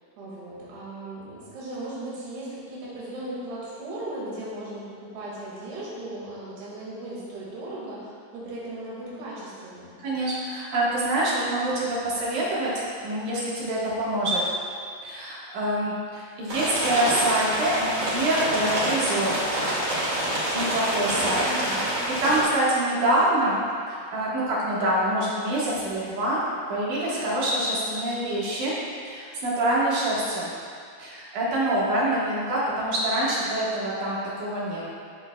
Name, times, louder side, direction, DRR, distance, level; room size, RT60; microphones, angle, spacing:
voice 1, 0.2-10.0 21.1-22.0, right 1 dB, 85° right, -7 dB, 4.1 m, -37 dB
voice 2, 10.0-12.7 13.0-14.4 15.0-19.6 20.5-21.4 22.2-23.6 23.9-26.4 26.7-28.7 29.1-30.5 31.0-34.8, right 1 dB, 60° right, -7 dB, 2.8 m, -25 dB
sound 1, 16.5-22.4, right 1 dB, 40° right, 2.3 m, -27 dB
14.5 x 7.0 x 2.3 m, 2.2 s
omnidirectional pair, 4.6 m